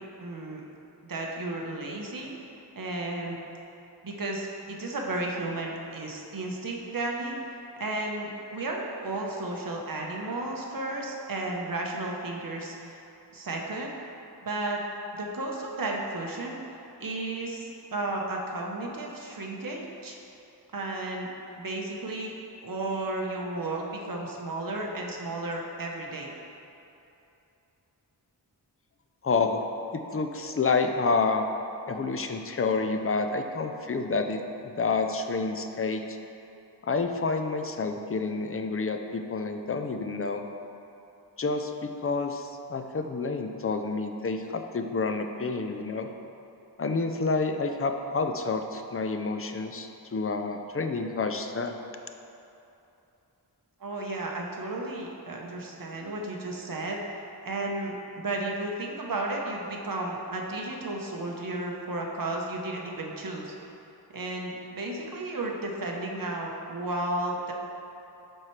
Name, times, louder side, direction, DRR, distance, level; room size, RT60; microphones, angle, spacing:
voice 1, 0.2-0.6 1.1-2.3 2.7-3.4 4.0-7.3 7.7-13.0 13.3-13.9 14.4-14.8 15.1-16.6 17.0-20.2 20.7-21.3 21.6-22.3 22.6-26.3 53.8-57.0 57.4-63.5 64.1-67.5, right 2 dB, 55° right, -1 dB, 1.0 m, -33 dB
voice 2, 29.2-29.6 29.9-31.5 31.9-36.2 36.8-40.4 41.4-46.1 46.8-51.8, left 4 dB, 35° left, 6 dB, 0.5 m, -29 dB
12.0 x 4.4 x 3.2 m, 2.9 s
wide cardioid pair, 100°, 41 cm